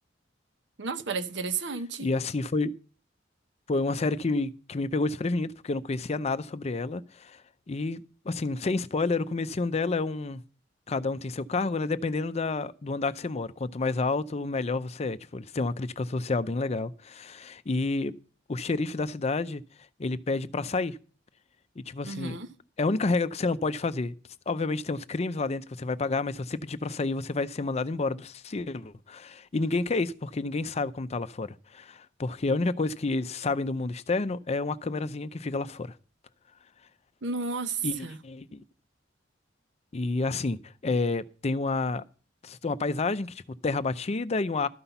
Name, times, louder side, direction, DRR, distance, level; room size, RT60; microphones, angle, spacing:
voice 1, 0.8-2.1 22.0-22.5 37.2-38.2, right 4 dB, 70° right, 0.9 m, -32 dB
voice 2, 2.0-2.7 3.7-7.4 7.7-10.4 10.9-18.1 18.5-19.6 20.0-21.0 21.9-22.4 22.8-24.1 24.5-35.9 37.8-38.6 39.9-42.0 42.4-44.7, left 3 dB, 35° left, 0.5 m, -29 dB
13.0 x 5.7 x 6.9 m
head